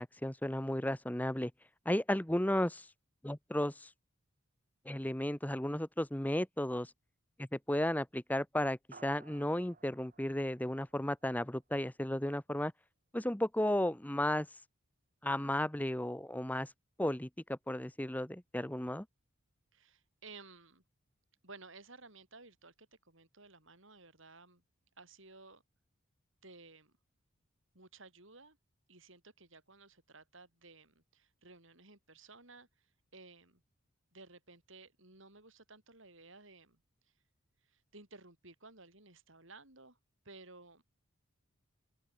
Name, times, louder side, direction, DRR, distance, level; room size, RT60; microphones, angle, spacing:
voice 1, 0.0-1.5 1.8-2.9 3.2-3.9 4.8-6.9 7.4-12.7 13.1-14.5 15.2-16.7 17.0-19.1, left 1 dB, 10° left, 1.0 m, -34 dB
sound 1, 8.9-11.6, right 4 dB, 40° right, 2.3 m, -59 dB
voice 2, 19.7-20.8 21.4-24.6 25.0-25.6 26.4-26.9 27.7-28.6 28.9-33.6 34.1-36.8 37.6-40.0 40.2-40.8, right 3 dB, 65° right, 7.5 m, -56 dB
open air
head